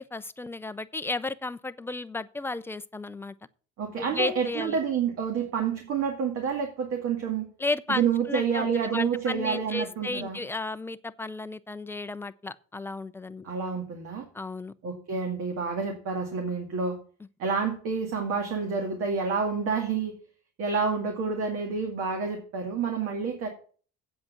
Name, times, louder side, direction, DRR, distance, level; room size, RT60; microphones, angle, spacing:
voice 1, 0.0-3.3 4.0-4.8 7.6-13.5 14.3-14.7, left 2 dB, 10° left, 0.4 m, -33 dB
voice 2, 3.8-7.5 7.9-10.4 13.4-14.3 14.8-17.0 17.4-20.1 20.6-23.5, right 6 dB, 50° right, 2.2 m, -28 dB
8.6 x 7.8 x 5.8 m
cardioid pair, 150°, 29 cm